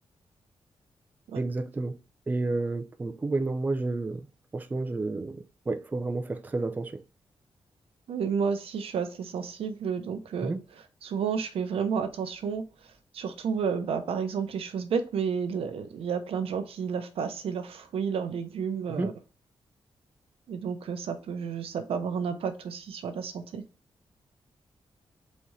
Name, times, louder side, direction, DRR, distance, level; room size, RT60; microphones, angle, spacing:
voice 1, 1.4-2.0 2.3-4.3 4.5-7.0 10.4-10.6 18.9-19.1, right 3 dB, 20° right, 0.4 m, -30 dB
voice 2, 8.1-10.5 11.0-12.6 13.1-19.1 20.5-23.6, right 6 dB, 85° right, 0.7 m, -31 dB
4.1 x 3.6 x 3.1 m
wide cardioid pair, 120°, 10 cm